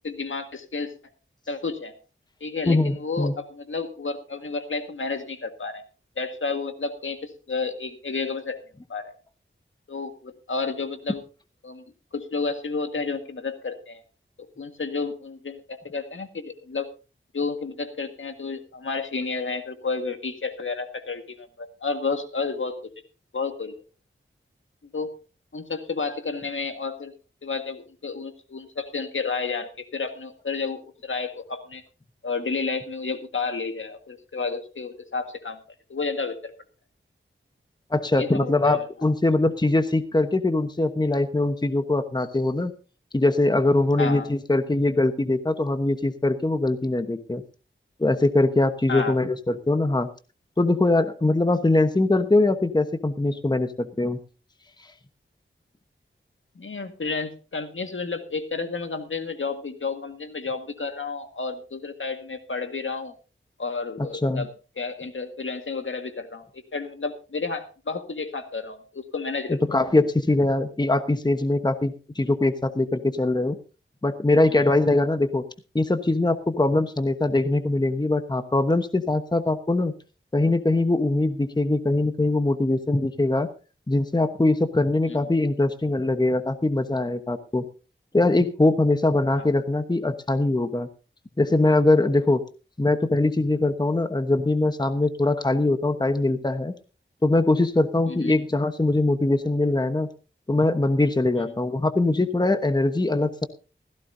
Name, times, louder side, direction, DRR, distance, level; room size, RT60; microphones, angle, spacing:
voice 1, 0.0-0.9 1.5-1.9 2.4-5.8 6.2-8.6 8.9-9.2 9.9-11.2 11.6-11.8 12.1-14.0 14.6-16.9 17.3-22.8 23.3-23.8 24.9-25.1 25.5-27.1 27.4-31.8 32.2-35.6 35.9-36.5 38.2-38.9 44.0-44.3 48.9-49.2 56.6-63.1 63.6-64.5 64.8-69.6 85.1-85.2 89.4-89.5 98.1-98.4, left 4 dB, 70° left, 7 dB, 1.8 m, -31 dB
voice 2, 2.7-3.3 37.9-42.7 43.1-47.4 48.0-50.1 50.6-54.2 64.0-64.4 69.5-73.6 74.0-75.4 75.7-79.9 80.3-83.5 83.9-87.6 88.1-90.9 91.4-92.4 92.8-96.7 97.2-100.1 100.5-103.5, left 2 dB, 20° left, 8 dB, 1.1 m, -22 dB
16.5 x 15.0 x 2.7 m, 0.34 s
wide cardioid pair, 90°, 21 cm